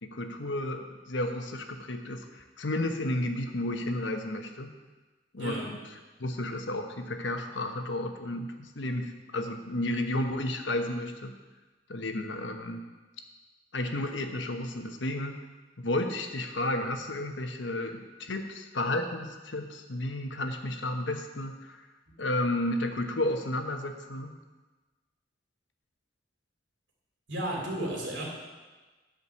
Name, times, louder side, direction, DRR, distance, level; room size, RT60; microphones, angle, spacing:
voice 1, 0.0-4.7 5.3-5.8 6.2-11.3 11.9-12.8 13.7-15.4 15.8-21.8 22.2-24.3, left 1 dB, 80° left, 5 dB, 1.1 m, -32 dB
voice 2, 5.4-5.7 27.3-28.3, right 1 dB, 75° right, -2 dB, 3.0 m, -33 dB
11.0 x 5.1 x 7.0 m, 1.3 s
head